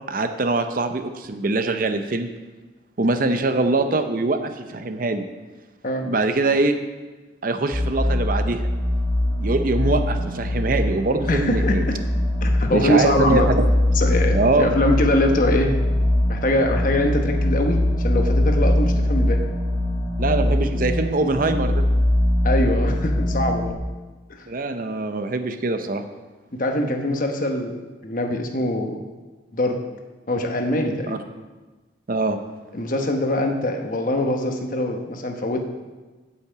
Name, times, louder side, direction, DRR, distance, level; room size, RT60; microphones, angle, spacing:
voice 1, 0.1-2.3 3.0-5.3 6.0-6.8 7.4-8.7 9.4-11.9 12.7-13.7 14.3-14.7 20.2-21.8 24.5-26.0 31.1-31.2 32.1-32.4, right 2 dB, 45° right, 8 dB, 0.6 m, -23 dB
sound 1, 7.7-23.7, left 1 dB, 20° left, 2.5 m, -22 dB
voice 2, 11.2-12.0 12.4-13.5 13.9-15.7 16.3-19.4 22.4-23.8 24.3-24.5 26.6-29.0 29.5-29.8 30.3-31.2 32.7-35.6, left 1 dB, 45° left, 3 dB, 1.0 m, -23 dB
8.4 x 5.7 x 7.9 m, 1.2 s
head